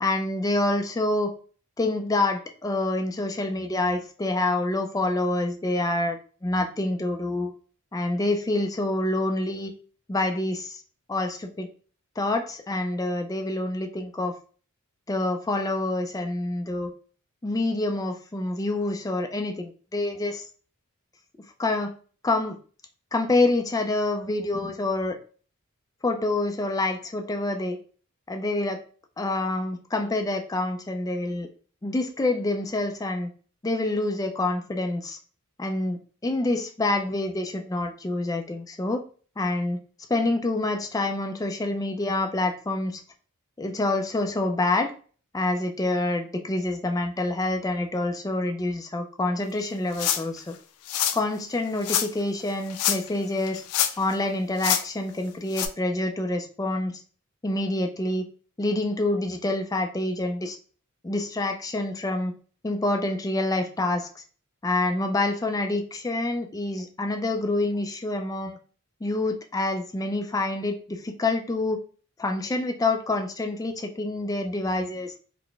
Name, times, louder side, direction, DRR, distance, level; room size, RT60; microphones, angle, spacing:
voice 1, 0.0-1.3 1.8-7.5 7.9-9.7 10.1-10.8 11.1-11.7 12.2-14.4 15.1-16.9 17.4-20.5 21.6-21.9 22.2-22.6 23.1-25.2 26.0-27.8 28.3-28.8 29.2-31.5 31.8-33.3 33.6-35.2 35.6-39.0 39.4-39.8 40.1-43.0 43.6-44.9 45.3-50.5 51.1-53.6 54.0-56.9 57.4-58.2 58.6-60.6 61.0-62.3 62.6-64.1 64.6-68.6 69.0-71.8 72.2-75.1, left 2 dB, 15° left, 5 dB, 0.4 m, -27 dB
sound 1, 49.9-50.4 50.9-51.2 51.8-52.1 52.7-53.2 53.5-54.1 54.6-54.8 55.5-55.7, left 10 dB, 90° left, 0.4 m, -25 dB
4.0 x 2.1 x 3.3 m, 0.41 s
head